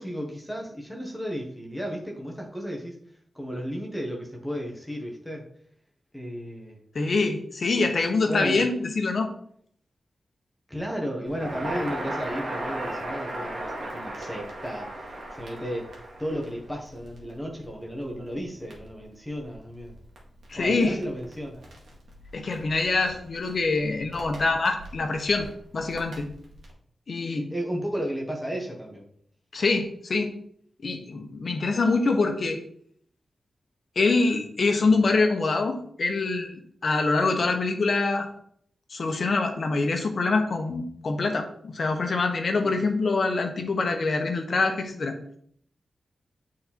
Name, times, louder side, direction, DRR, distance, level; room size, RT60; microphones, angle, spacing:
voice 1, 0.0-3.0 3.3-5.4 6.1-6.8 8.3-8.6 10.7-20.0 20.5-21.6 27.5-29.1 42.6-42.7, equal, 5° left, -1 dB, 1.5 m, -34 dB
voice 2, 6.9-9.3 20.5-21.0 22.3-25.5 25.7-26.3 27.1-27.5 29.5-30.3 30.8-32.6 33.9-38.3 38.9-45.1, left 3 dB, 50° left, 5 dB, 1.1 m, -25 dB
Crackle, 11.3-26.7, right 1 dB, 65° right, 1.9 m, -39 dB
8.6 x 4.3 x 4.3 m, 0.65 s
wide cardioid pair, 155°, 0 cm